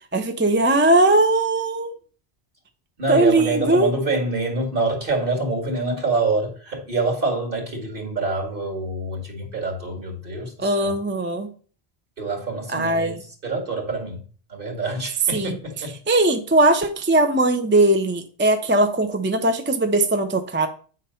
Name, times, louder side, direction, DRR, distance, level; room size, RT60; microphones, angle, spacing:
voice 1, 0.1-1.9 3.1-3.9 10.6-11.5 12.7-13.2 15.3-15.6 16.1-20.7, right 2 dB, 15° right, 7 dB, 0.5 m, -19 dB
voice 2, 3.0-10.9 12.2-13.2 13.4-14.2 14.5-16.0, right 3 dB, 55° right, 1 dB, 2.3 m, -26 dB
8.8 x 3.9 x 5.6 m, 0.42 s
omnidirectional pair, 1.1 m